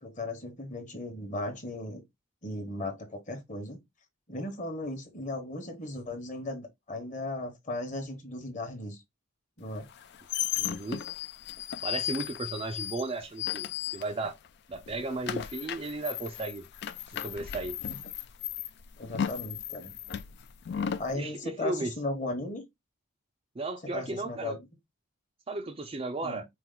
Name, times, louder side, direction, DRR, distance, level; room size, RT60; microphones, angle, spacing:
voice 1, 0.0-2.0 2.4-3.8 4.3-9.0 9.6-9.9 17.9-18.0 19.0-19.9 21.0-22.6 23.8-24.6 26.2-26.4, left 2 dB, 35° left, 1.1 m, -36 dB
sound 1, 9.8-14.5 14.7-21.1, left 9 dB, 50° left, 0.3 m, -35 dB
voice 2, 10.6-11.0 11.8-13.7 13.9-14.3 14.7-16.6 17.1-17.8 21.1-21.9 23.6-24.6 25.5-26.5, right 2 dB, 25° right, 0.4 m, -35 dB
4.5 x 2.0 x 3.7 m
head